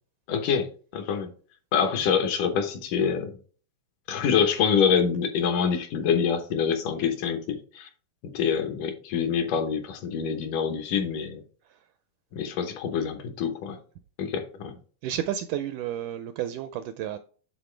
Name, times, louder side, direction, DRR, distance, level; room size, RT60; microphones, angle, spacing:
voice 1, 0.3-0.7 0.9-1.3 1.7-3.4 4.1-7.9 8.2-11.4 12.3-13.8 14.2-14.8, left 7 dB, 70° left, 2.4 m, -26 dB
voice 2, 15.0-17.2, right 11 dB, 85° right, 1.8 m, -31 dB
11.0 x 4.1 x 3.2 m
omnidirectional pair, 4.0 m